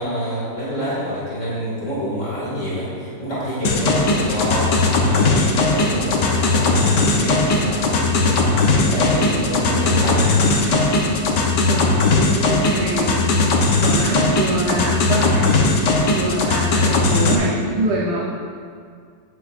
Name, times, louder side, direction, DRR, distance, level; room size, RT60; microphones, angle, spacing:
voice 1, 0.0-10.4, equal, 40° left, -9 dB, 2.7 m, -27 dB
sound 1, 3.6-17.4, left 3 dB, 70° left, 1.6 m, -18 dB
voice 2, 11.6-13.3 13.8-15.5 16.0-18.2, right 2 dB, 70° right, -4 dB, 1.6 m, -25 dB
14.0 x 9.2 x 2.6 m, 2.1 s
omnidirectional pair, 1.9 m